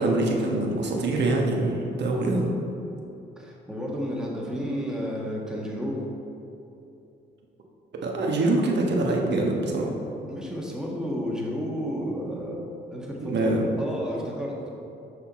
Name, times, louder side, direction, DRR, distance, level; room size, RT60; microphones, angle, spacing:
voice 1, 0.0-2.5 8.0-9.9 13.2-13.7, right 2 dB, 60° right, 0 dB, 1.2 m, -24 dB
voice 2, 3.4-6.0 10.3-12.6 12.9-14.7, equal, 5° right, -3 dB, 1.5 m, -32 dB
6.5 x 5.6 x 4.2 m, 2.8 s
cardioid pair, 90°, 20 cm